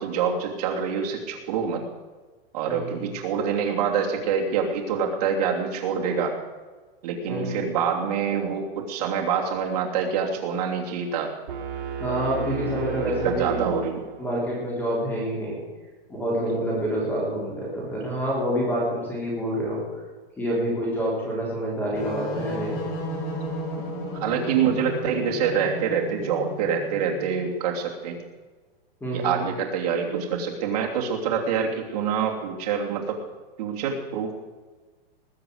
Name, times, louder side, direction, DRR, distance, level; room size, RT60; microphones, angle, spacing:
voice 1, 0.0-1.8 2.5-6.3 7.0-11.3 12.1-12.2 13.2-14.0 23.8-28.2 29.1-33.2 33.6-34.3, right 7 dB, 40° right, 0 dB, 3.0 m, -26 dB
voice 2, 7.3-7.6 12.0-13.6 14.2-15.6 16.1-19.8 20.4-22.8 29.0-29.4, equal, 5° left, -4 dB, 3.7 m, -27 dB
sound 1, 11.5-14.4, right 7 dB, 60° right, 3.1 m, -34 dB
sound 2, 21.9-27.4, left 1 dB, 35° left, 4.7 m, -34 dB
20.0 x 7.0 x 8.0 m, 1.3 s
hypercardioid pair, 170°, 30 cm